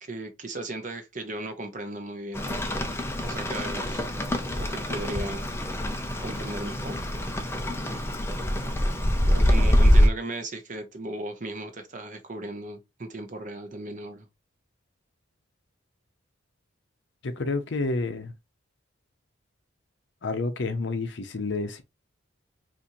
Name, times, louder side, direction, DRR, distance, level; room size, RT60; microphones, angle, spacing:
voice 1, 0.0-2.5 3.2-4.0 4.6-5.4 6.2-7.0 9.3-14.3, right 2 dB, 40° right, 0.7 m, -36 dB
Rain, 2.3-10.1, equal, 10° left, 0.4 m, -24 dB
voice 2, 17.2-18.3 20.2-21.8, left 3 dB, 60° left, 0.6 m, -29 dB
4.2 x 2.6 x 2.6 m
head